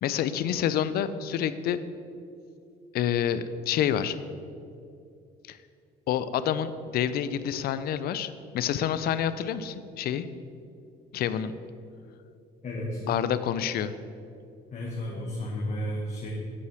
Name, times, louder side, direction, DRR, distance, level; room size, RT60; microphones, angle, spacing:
voice 1, 0.0-1.8 2.9-4.2 5.5-5.6 6.1-10.3 11.1-11.5 13.0-13.9, left 9 dB, 65° left, 13 dB, 0.5 m, -28 dB
voice 2, 12.6-13.0 14.7-16.3, equal, 45° left, -3 dB, 1.3 m, -33 dB
8.5 x 4.8 x 6.2 m, 2.5 s
cardioid pair, 110°, 17 cm